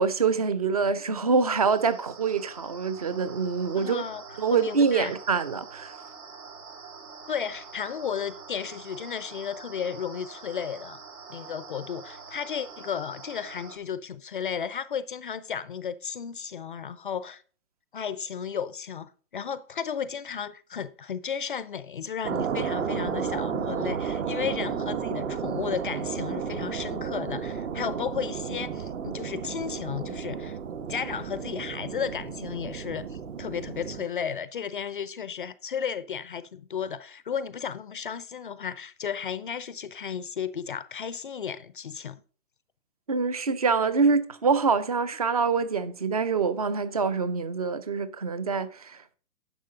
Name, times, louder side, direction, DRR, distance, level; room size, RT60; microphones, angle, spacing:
voice 1, 0.0-4.0 4.4-6.0 43.1-49.2, right 5 dB, 30° right, 0.3 m, -25 dB
sound 1, 1.2-13.8, right 5 dB, 80° right, 3.5 m, -46 dB
voice 2, 3.8-4.2 4.5-5.1 7.3-11.0 11.3-17.4 17.9-30.6 30.9-42.2, left 7 dB, 40° left, 0.4 m, -34 dB
sound 2, 22.2-34.1, right 7 dB, 55° right, 1.2 m, -32 dB
10.5 x 6.5 x 3.7 m
hypercardioid pair, 135°, 44 cm